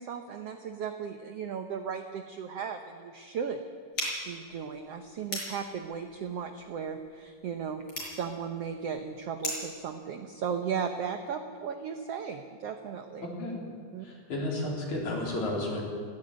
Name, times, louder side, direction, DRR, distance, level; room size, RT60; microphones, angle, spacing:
voice 1, 0.0-3.6 4.2-13.3 13.9-14.1, right 7 dB, 80° right, 7 dB, 1.4 m, -36 dB
sound 1, 3.9-9.8, left 1 dB, 30° left, 6.1 m, -39 dB
voice 2, 14.0-15.8, left 1 dB, 55° left, -2 dB, 5.2 m, -32 dB
19.5 x 15.0 x 9.0 m, 2.1 s
omnidirectional pair, 4.1 m